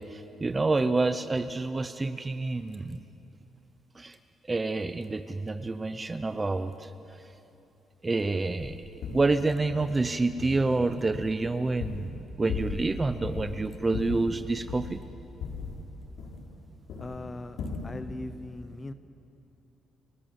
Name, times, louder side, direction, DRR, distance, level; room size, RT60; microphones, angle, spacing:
voice 1, 0.0-3.0 4.0-4.2 4.5-6.9 8.0-8.8 9.1-12.1 12.4-15.0, right 3 dB, 20° right, 10 dB, 0.7 m, -28 dB
sound 1, 8.6-8.7 9.0-9.3 9.7-10.0 10.4-10.8 11.1-12.2 12.5-12.9 13.2-13.5 13.9-15.0 15.4-16.6 16.9-17.2 17.6-17.9, left 5 dB, 80° left, 4.7 m, -37 dB
voice 2, 17.0-18.9, left 2 dB, 20° left, 11 dB, 1.0 m, -40 dB
30.0 x 18.0 x 8.0 m, 2.8 s
cardioid pair, 150°, 0 cm